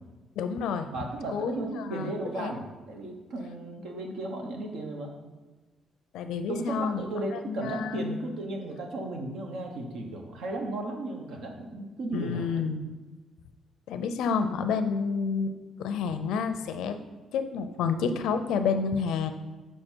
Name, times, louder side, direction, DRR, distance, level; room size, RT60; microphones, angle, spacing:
voice 1, 0.4-0.9 1.3-2.6 6.1-7.0 7.5-8.1 12.1-12.9 13.9-17.0 17.3-19.3, left 5 dB, 85° left, 8 dB, 0.5 m, -29 dB
voice 2, 0.9-5.1 6.5-12.6, right 2 dB, 80° right, 2 dB, 1.1 m, -35 dB
6.5 x 4.6 x 4.5 m, 1.3 s
cardioid pair, 90°, 0 cm